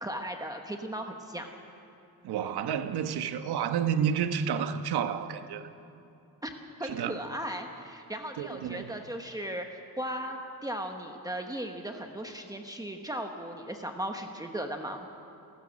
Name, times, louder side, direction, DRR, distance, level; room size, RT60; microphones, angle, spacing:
voice 1, 0.0-1.5 6.4-6.5 6.8-15.1, right 1 dB, 10° right, 3 dB, 1.0 m, -37 dB
voice 2, 2.2-5.7 6.8-7.1 8.4-8.9, right 8 dB, 80° right, 9 dB, 1.2 m, -30 dB
29.0 x 14.5 x 6.4 m, 2.8 s
cardioid pair, 170°, 38 cm